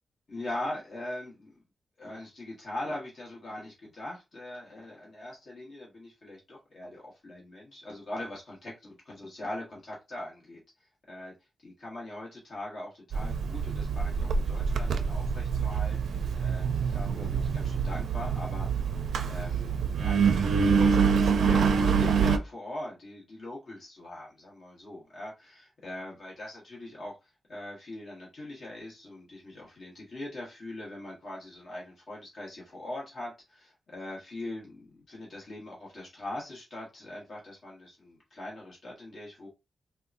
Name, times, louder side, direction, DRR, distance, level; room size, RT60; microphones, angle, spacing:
voice 1, 0.3-1.6 2.0-10.6 11.1-11.3 11.6-16.6 16.9-18.9 19.2-39.5, left 1 dB, 55° left, 1.2 m, -41 dB
Engine, 13.1-22.4, right 6 dB, 80° right, 0.4 m, -26 dB
3.7 x 2.2 x 2.5 m
wide cardioid pair, 125°, 0 cm